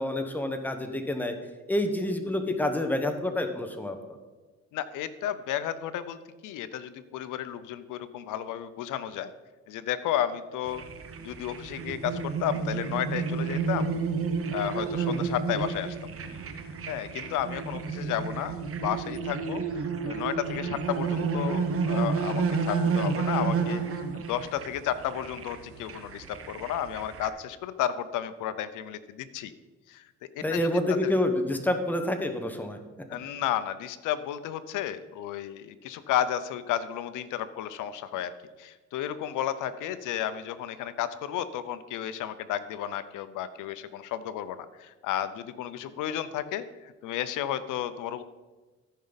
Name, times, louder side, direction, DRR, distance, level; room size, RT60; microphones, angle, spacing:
voice 1, 0.0-1.3 1.7-4.2 30.4-32.8, left 1 dB, 5° left, 6 dB, 1.0 m, -28 dB
voice 2, 4.7-9.3 9.7-10.8 11.2-13.9 14.5-16.0 16.9-29.5 29.9-30.0 30.3-30.7 31.0-31.1 33.1-38.3 38.6-48.2, left 10 dB, 90° left, 13 dB, 0.7 m, -32 dB
sound 1, 10.7-27.3, right 5 dB, 50° right, 1.0 m, -31 dB
14.0 x 5.4 x 4.0 m, 1.2 s
cardioid pair, 90°, 30 cm